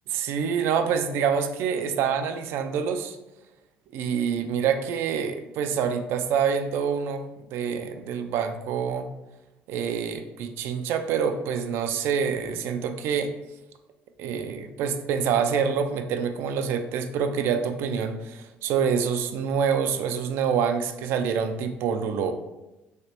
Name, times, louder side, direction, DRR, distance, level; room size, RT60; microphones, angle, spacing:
voice 1, 0.1-3.2 3.9-7.3 7.5-9.1 9.7-13.3 14.2-22.3, right 7 dB, 70° right, 7 dB, 0.3 m, -26 dB
3.2 x 2.8 x 2.9 m, 1.0 s
cardioid pair, 160°, 4 cm